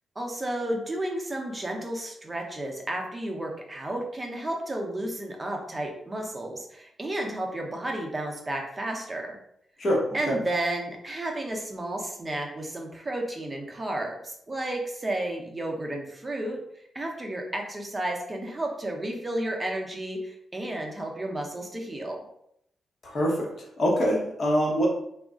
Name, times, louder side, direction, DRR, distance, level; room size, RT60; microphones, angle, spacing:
voice 1, 0.2-9.4 10.1-16.6 16.9-22.2, right 1 dB, 25° right, 1 dB, 0.7 m, -32 dB
voice 2, 9.8-10.4 23.0-24.9, equal, 50° left, -3 dB, 1.0 m, -25 dB
2.4 x 2.1 x 3.7 m, 0.73 s
cardioid pair, 65°, 0 cm